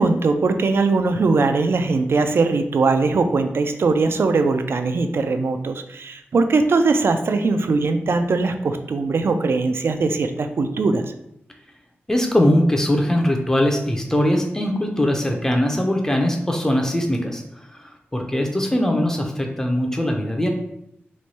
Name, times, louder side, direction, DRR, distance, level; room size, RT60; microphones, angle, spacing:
voice 1, 0.0-11.0, right 3 dB, 60° right, 7 dB, 0.3 m, -20 dB
voice 2, 12.1-17.4 17.7-20.5, left 1 dB, 10° left, 2 dB, 0.5 m, -21 dB
3.1 x 2.2 x 4.0 m, 0.78 s
wide cardioid pair, 120°, 4 cm